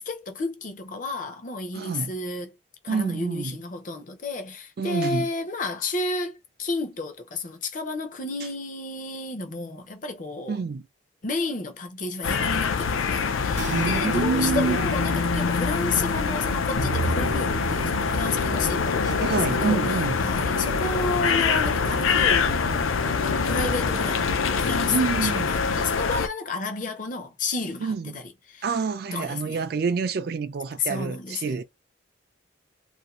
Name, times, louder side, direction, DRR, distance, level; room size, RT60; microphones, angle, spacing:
voice 1, 0.0-2.5 2.8-10.6 11.2-19.8 20.2-22.7 23.2-28.2 28.5-28.6 29.1-29.6 30.8-31.6, left 3 dB, 40° left, 0.6 m, -31 dB
voice 2, 1.7-2.1 2.9-3.6 4.8-5.3 10.5-10.9 13.7-14.8 19.0-20.1 24.9-25.5 27.8-28.2 28.6-31.6, right 5 dB, 50° right, 0.3 m, -27 dB
sound 1, 12.2-26.3, left 5 dB, 90° left, 0.4 m, -25 dB
sound 2, 13.5-20.0, right 5 dB, 65° right, 0.7 m, -37 dB
Musical instrument, 16.8-25.3, left 1 dB, 70° left, 0.9 m, -31 dB
2.6 x 2.6 x 2.9 m
head